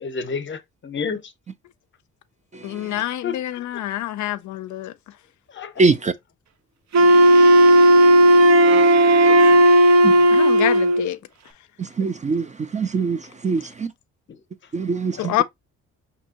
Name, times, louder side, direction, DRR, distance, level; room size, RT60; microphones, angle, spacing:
voice 1, 0.0-1.2 3.2-3.4 5.6-5.7 9.0-9.3, left 5 dB, 40° left, 0.7 m, -30 dB
voice 2, 2.6-4.9 7.3-7.5 10.3-11.2 15.2-15.4, left 14 dB, 70° left, 0.5 m, -26 dB
voice 3, 5.8-6.1 7.1-9.5 10.0-10.1 12.0-12.4 12.7-13.2 13.4-13.6 14.7-15.3, right 4 dB, 25° right, 0.4 m, -24 dB
Wind instrument woodwind instrument, 6.9-11.1, right 1 dB, 60° right, 0.7 m, -13 dB
5.2 x 2.7 x 2.8 m
cardioid pair, 90°, 30 cm